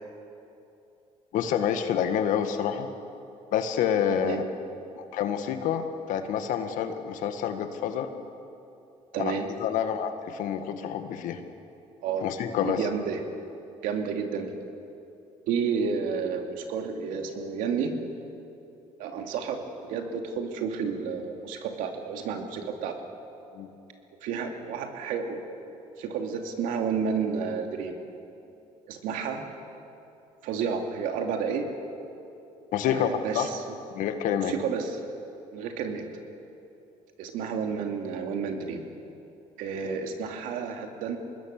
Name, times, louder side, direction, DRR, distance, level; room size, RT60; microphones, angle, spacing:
voice 1, 1.3-2.9 3.5-4.4 5.0-8.1 9.2-11.4 12.2-12.9 23.5-23.7 32.7-33.1 33.3-33.5 33.9-34.5, left 9 dB, 75° left, 7 dB, 1.9 m, -28 dB
voice 2, 9.1-9.5 12.0-12.2 12.6-13.2 13.8-14.5 15.5-18.0 19.0-19.6 19.9-22.9 24.2-25.7 26.0-28.0 28.9-29.4 30.4-31.7 32.9-33.8 34.3-35.0 35.5-36.1 37.2-38.8 39.6-41.2, right 6 dB, 80° right, 3 dB, 2.6 m, -31 dB
25.0 x 20.5 x 6.8 m, 2.8 s
supercardioid pair, 75°, 14 cm